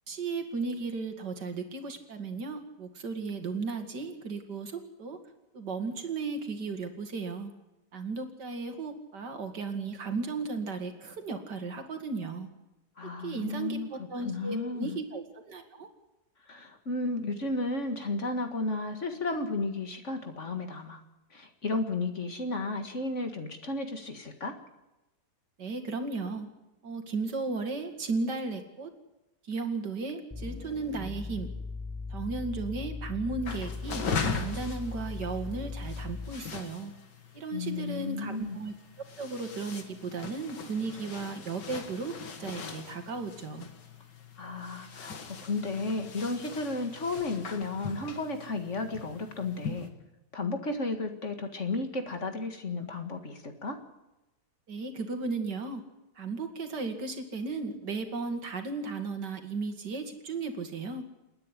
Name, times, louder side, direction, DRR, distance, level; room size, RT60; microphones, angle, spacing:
voice 1, 0.1-5.2 5.5-7.5 7.9-12.5 13.2-15.9 25.6-26.5 26.8-28.9 29.5-31.5 32.1-34.0 34.3-36.9 37.3-38.7 39.2-42.1 42.4-43.7 54.7-55.8 56.2-61.0, right 4 dB, 75° right, 6 dB, 2.7 m, -35 dB
voice 2, 13.0-15.0 16.5-21.0 21.3-24.6 37.5-38.6 44.4-49.9 50.3-53.8, left 3 dB, 45° left, 6 dB, 2.2 m, -33 dB
sound 1, 30.3-36.5, left 4 dB, 5° left, 1.0 m, -38 dB
sound 2, 33.4-49.9, left 5 dB, 85° left, 2.4 m, -40 dB
28.5 x 9.8 x 9.9 m, 0.99 s
omnidirectional pair, 1.8 m